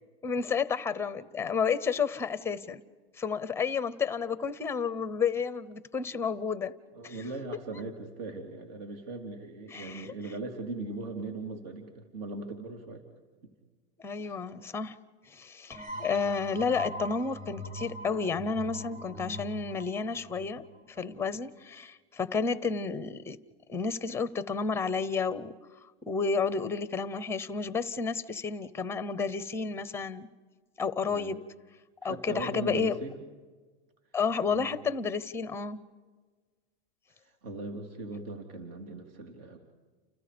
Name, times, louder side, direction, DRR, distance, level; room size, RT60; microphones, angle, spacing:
voice 1, 0.2-2.8 3.2-6.7 7.0-7.2 9.7-10.1 14.0-15.0 15.2-23.4 23.7-25.5 26.1-30.3 30.8-31.4 32.0-33.0 34.1-35.8, left 5 dB, 10° left, 15 dB, 0.7 m, -31 dB
voice 2, 6.9-13.0 13.4-13.5 14.2-14.4 15.9-16.0 31.1-31.4 32.0-33.2 34.5-34.8 37.1-39.6, right 3 dB, 60° right, 4 dB, 3.4 m, -39 dB
sound 1, 15.7-21.2, equal, 25° right, 7.1 m, -42 dB
30.0 x 30.0 x 5.2 m, 1.4 s
supercardioid pair, 160°, 32 cm